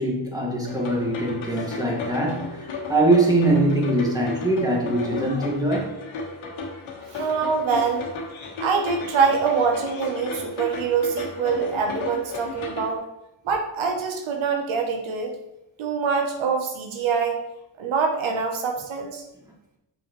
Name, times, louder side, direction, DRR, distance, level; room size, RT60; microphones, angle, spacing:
voice 1, 0.0-5.9, right 2 dB, 10° right, -2 dB, 2.1 m, -22 dB
sound 1, 0.6-12.9, left 4 dB, 75° left, 1.7 m, -34 dB
voice 2, 7.1-8.1 8.6-13.1 13.4-15.3 15.8-17.4 17.8-19.2, right 5 dB, 80° right, 3 dB, 1.1 m, -24 dB
6.9 x 5.9 x 3.2 m, 0.89 s
cardioid pair, 85°, 47 cm